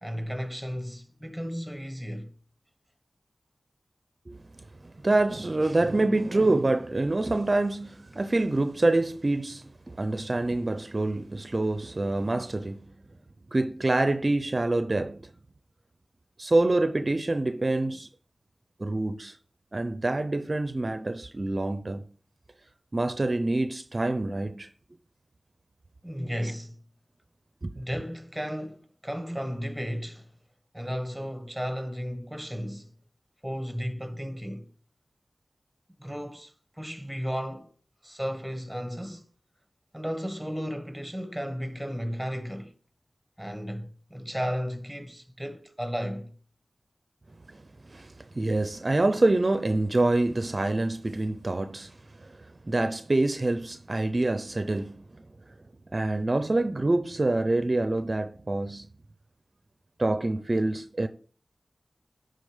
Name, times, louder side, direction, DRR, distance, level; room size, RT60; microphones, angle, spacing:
voice 1, 0.0-2.3 26.0-26.8 27.7-30.3 30.7-32.9 33.4-34.7 36.0-37.7 38.0-39.2 39.9-42.7 43.4-46.3, equal, ahead, 1.4 m, -34 dB
voice 2, 4.8-12.9 13.5-15.3 16.4-18.1 18.8-19.4 19.7-22.0 22.9-24.7 27.6-27.7 47.5-55.0 55.9-58.9 60.0-61.1, right 2 dB, 45° right, 0.6 m, -26 dB
10.5 x 3.8 x 5.1 m
wide cardioid pair, 45°, 0 cm